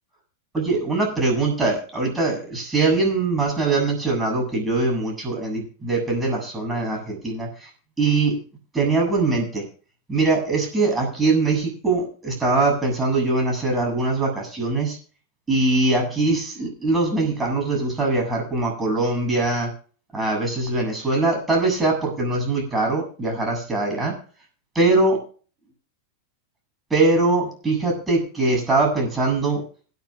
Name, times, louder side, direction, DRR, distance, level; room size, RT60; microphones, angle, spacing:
voice 1, 0.5-7.7 8.0-8.4 8.7-9.6 10.1-15.0 15.5-19.7 20.1-24.2 24.8-25.2 26.9-29.6, right 3 dB, 15° right, 1 dB, 7.3 m, -22 dB
26.5 x 9.7 x 2.4 m, 0.41 s
figure-of-eight pair, 90°, 0 cm